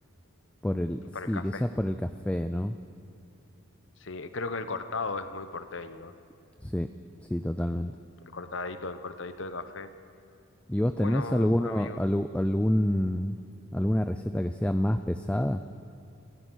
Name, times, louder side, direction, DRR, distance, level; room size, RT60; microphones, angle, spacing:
voice 1, 0.6-1.0 1.3-2.8 6.6-6.9 7.3-8.0 10.7-13.4 13.7-15.6, left 1 dB, 5° left, 9 dB, 0.4 m, -27 dB
voice 2, 1.1-1.6 4.0-6.1 8.3-9.9 11.0-12.0, left 3 dB, 60° left, 11 dB, 1.0 m, -36 dB
25.5 x 16.0 x 6.4 m, 2.5 s
head